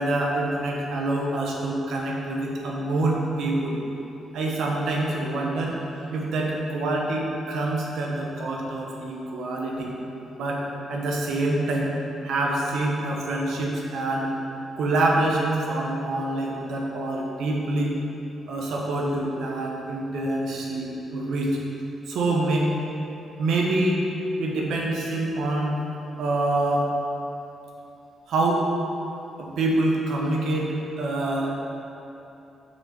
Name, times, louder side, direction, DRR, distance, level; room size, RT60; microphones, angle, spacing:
voice 1, 0.0-3.8 4.3-5.7 6.1-9.9 10.3-10.6 10.9-11.9 12.2-14.3 14.8-17.9 18.5-21.6 22.1-22.7 23.4-24.0 24.4-25.8 26.2-26.9 28.3-28.7 29.4-31.6, right 2 dB, 80° right, -1 dB, 1.1 m, -26 dB
6.2 x 6.1 x 4.4 m, 2.9 s
wide cardioid pair, 165°, 0 cm